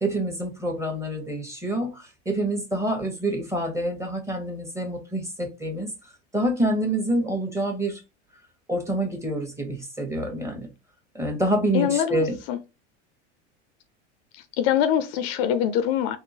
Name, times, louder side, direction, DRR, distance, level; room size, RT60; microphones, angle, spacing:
voice 1, 0.0-5.9 6.3-8.0 8.7-10.7 11.1-12.4, right 1 dB, 10° right, 1.1 m, -27 dB
voice 2, 11.7-12.6 14.3-16.2, left 9 dB, 55° left, 0.5 m, -24 dB
3.6 x 2.0 x 2.6 m
hypercardioid pair, 90°, 36 cm